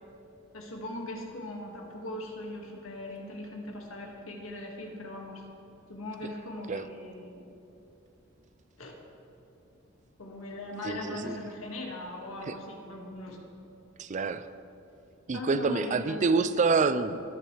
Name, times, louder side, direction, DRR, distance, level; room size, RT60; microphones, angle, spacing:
voice 1, 0.5-5.4 5.9-7.4 8.8-9.0 10.2-13.4 15.3-16.6, left 1 dB, 85° left, 0 dB, 1.9 m, -39 dB
voice 2, 10.8-11.4 12.5-12.6 14.0-14.4 15.3-17.2, right 4 dB, 35° right, 13 dB, 0.4 m, -27 dB
21.5 x 7.8 x 3.3 m, 2.8 s
head